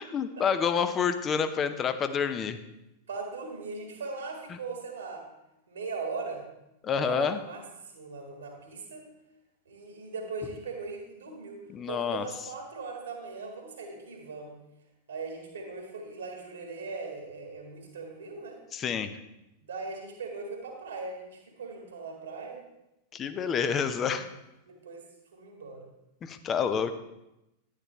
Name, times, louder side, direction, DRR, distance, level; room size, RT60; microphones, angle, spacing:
voice 1, 0.0-2.6 4.5-4.6 6.8-7.4 11.7-12.3 18.7-19.1 23.1-24.2 26.2-27.0, left 7 dB, 25° left, 10 dB, 0.7 m, -28 dB
voice 2, 3.1-5.3 5.7-6.4 6.9-7.6 7.9-9.1 9.6-14.5 15.1-18.6 19.6-22.6 23.7-24.2 24.7-25.1 25.3-25.9, right 4 dB, 70° right, 1 dB, 1.7 m, -39 dB
10.5 x 9.9 x 3.1 m, 0.91 s
figure-of-eight pair, 90°, 0 cm